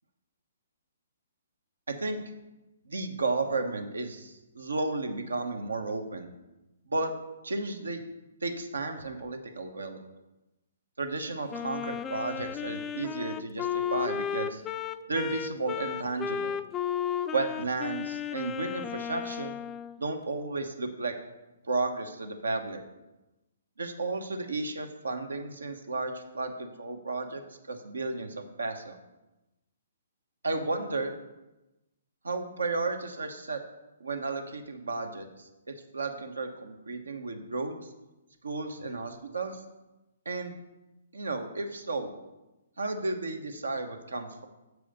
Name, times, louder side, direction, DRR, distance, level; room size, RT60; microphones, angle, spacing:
voice 1, 1.9-2.2 2.8-6.3 6.8-7.2 7.4-8.0 8.4-10.0 11.0-14.6 15.1-16.6 17.3-19.6 20.0-21.2 21.6-22.8 23.8-27.4 27.7-29.0 30.4-31.1 32.2-33.6 34.0-37.8 38.4-39.6 40.2-40.5 41.1-42.1 42.8-44.5, right 3 dB, 85° right, 6 dB, 1.0 m, -33 dB
Wind instrument woodwind instrument, 11.5-20.0, left 8 dB, 20° left, 0.3 m, -34 dB
7.0 x 4.8 x 6.4 m, 1.0 s
hypercardioid pair, 135°, 0 cm